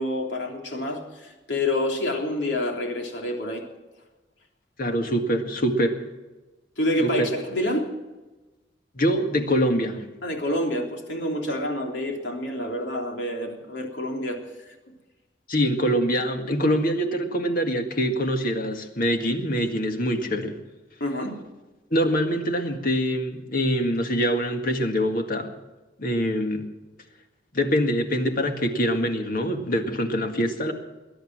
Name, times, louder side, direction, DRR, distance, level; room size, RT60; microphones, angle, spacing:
voice 1, 0.0-3.6 6.8-7.9 10.2-14.4 21.0-21.4, left 1 dB, 70° left, 1 dB, 3.3 m, -28 dB
voice 2, 4.8-6.0 7.0-7.3 9.0-10.1 15.5-20.6 21.9-25.5 26.0-26.6 27.5-30.7, equal, 50° left, 5 dB, 1.9 m, -24 dB
21.0 x 11.0 x 6.2 m, 1.1 s
head